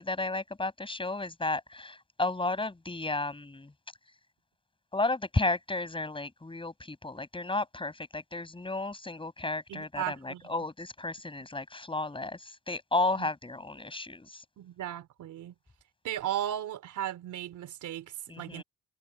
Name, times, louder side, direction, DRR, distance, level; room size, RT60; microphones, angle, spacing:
voice 1, 0.0-3.7 4.9-12.4 12.7-14.4 18.3-18.6, left 2 dB, 15° left, 6.1 m, -33 dB
voice 2, 9.7-10.6 13.2-13.3 14.6-15.5 16.0-18.6, right 11 dB, 80° right, 3.5 m, -36 dB
cardioid pair, 90°, 30 cm